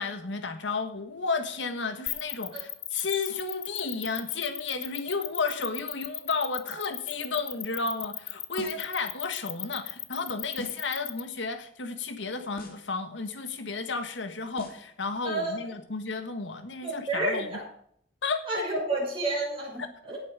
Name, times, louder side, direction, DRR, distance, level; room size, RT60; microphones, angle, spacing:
voice 1, 0.0-17.5 18.2-18.4, left 4 dB, 80° left, 8 dB, 1.5 m, -32 dB
sound 1, 2.1-11.2, left 11 dB, 30° left, 0.7 m, -36 dB
sound 2, 8.6-9.0 10.6-11.0 12.6-13.0 14.6-15.0, left 2 dB, 55° left, 2.2 m, -43 dB
voice 2, 15.2-15.7 16.8-17.6 18.5-20.2, right 2 dB, 30° right, -3 dB, 6.4 m, -30 dB
17.5 x 7.4 x 4.9 m, 0.65 s
head